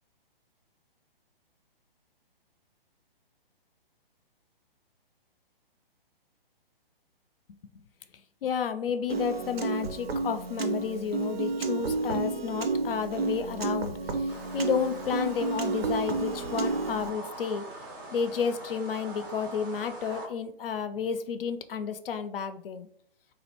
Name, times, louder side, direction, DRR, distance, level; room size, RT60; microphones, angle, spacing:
voice 1, 8.4-17.6 18.1-22.9, left 7 dB, 70° left, 10 dB, 0.4 m, -31 dB
Piano, 9.1-17.1, right 3 dB, 80° right, 0.6 m, -31 dB
sound 1, 14.3-20.3, right 2 dB, 25° right, 0.4 m, -43 dB
3.1 x 2.4 x 2.8 m, 0.65 s
hypercardioid pair, 135°, 30 cm